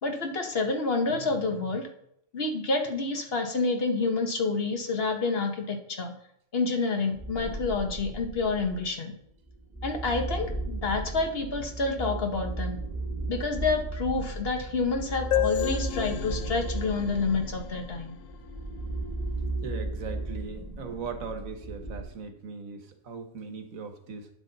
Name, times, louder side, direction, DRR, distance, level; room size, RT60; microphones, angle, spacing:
voice 1, 0.0-1.9 2.3-6.1 6.5-9.1 9.8-12.8 13.3-18.2, left 3 dB, 50° left, 4 dB, 1.2 m, -28 dB
sound 1, 7.1-8.9 9.5-22.0, right 2 dB, 5° left, 2.3 m, -35 dB
sound 2, 15.3-18.8, left 12 dB, 85° left, 1.1 m, -32 dB
voice 2, 19.6-24.3, right 5 dB, 90° right, 6 dB, 1.6 m, -39 dB
10.5 x 7.5 x 4.0 m, 0.73 s
omnidirectional pair, 1.4 m